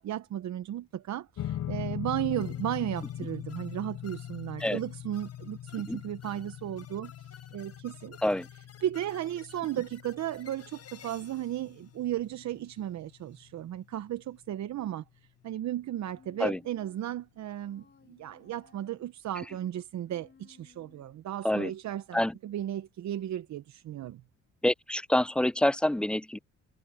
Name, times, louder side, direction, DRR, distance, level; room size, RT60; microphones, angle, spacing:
voice 1, 0.0-8.2 8.8-15.0 15.4-24.2, right 12 dB, 65° right, 0.9 m, -35 dB
sound 1, 1.4-13.9, left 11 dB, 75° left, 4.4 m, -41 dB
sound 2, 2.4-12.8, left 8 dB, 55° left, 5.5 m, -55 dB
Human voice, 16.1-17.0 17.6-19.2 20.0-21.3, left 6 dB, 35° left, 4.1 m, -60 dB
voice 2, 24.6-26.4, left 1 dB, 5° left, 0.4 m, -27 dB
cardioid pair, 90°, 30 cm